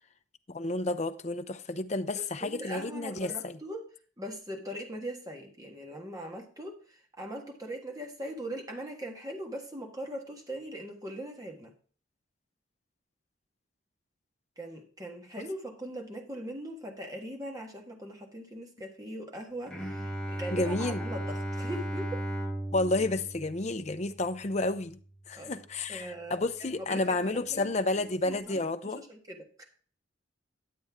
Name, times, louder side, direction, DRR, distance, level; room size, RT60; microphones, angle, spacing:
voice 1, 0.5-3.6 20.5-21.0 22.7-25.0 25.3-29.0, left 2 dB, 35° left, 0.6 m, -31 dB
voice 2, 2.1-3.9 4.2-11.7 14.6-22.2 25.3-25.6 25.9-29.6, right 1 dB, 20° right, 1.5 m, -41 dB
Bowed string instrument, 19.7-25.4, right 1 dB, 5° left, 1.2 m, -37 dB
10.5 x 7.7 x 3.6 m
head